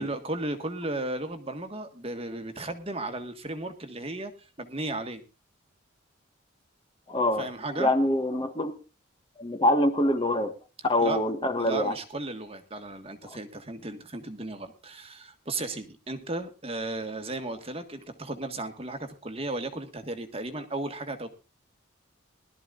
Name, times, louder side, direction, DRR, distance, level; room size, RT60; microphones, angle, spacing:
voice 1, 0.0-5.2 7.4-7.9 11.0-11.2 11.6-21.3, right 2 dB, 30° right, 7 dB, 1.6 m, -35 dB
voice 2, 7.1-7.5 7.8-8.7 9.4-10.5 10.8-11.9 13.2-13.4, left 1 dB, 25° left, 6 dB, 1.4 m, -25 dB
21.0 x 13.0 x 2.5 m, 0.30 s
head